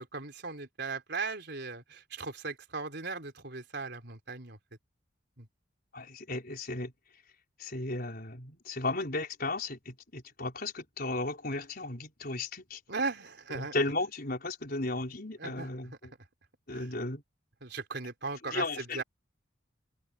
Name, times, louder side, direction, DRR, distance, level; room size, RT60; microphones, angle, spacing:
voice 1, 0.0-4.6 5.4-5.5 12.9-13.7 15.4-15.7 16.7-16.9 17.6-19.0, right 4 dB, 55° right, 4.3 m, -37 dB
voice 2, 5.9-6.9 7.6-12.8 13.5-15.9 16.7-17.2 18.5-19.0, left 2 dB, 50° left, 4.9 m, -35 dB
head